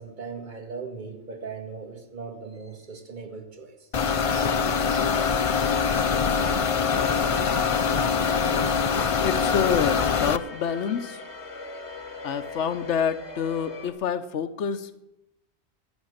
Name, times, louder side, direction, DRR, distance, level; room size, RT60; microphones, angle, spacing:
voice 1, 0.0-3.9 4.2-4.5 4.9-5.1, right 5 dB, 45° right, 4 dB, 1.9 m, -39 dB
sound 1, 3.9-10.4, left 6 dB, 45° left, 0.5 m, -23 dB
sound 2, 6.9-13.9, left 4 dB, 70° left, 2.3 m, -38 dB
voice 2, 9.2-11.2 12.2-15.0, left 7 dB, 90° left, 12 dB, 1.1 m, -27 dB
16.0 x 10.5 x 6.5 m, 0.90 s
omnidirectional pair, 1.2 m